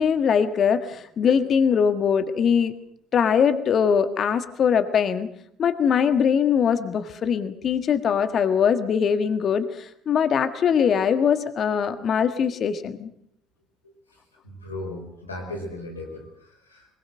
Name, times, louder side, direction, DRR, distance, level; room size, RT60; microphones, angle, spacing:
voice 1, 0.0-2.7 3.1-5.3 5.6-13.1, left 7 dB, 45° left, 10 dB, 1.7 m, -22 dB
voice 2, 13.8-16.9, left 1 dB, 90° left, 1 dB, 4.9 m, -37 dB
22.5 x 21.0 x 6.5 m, 0.68 s
figure-of-eight pair, 55°, 0 cm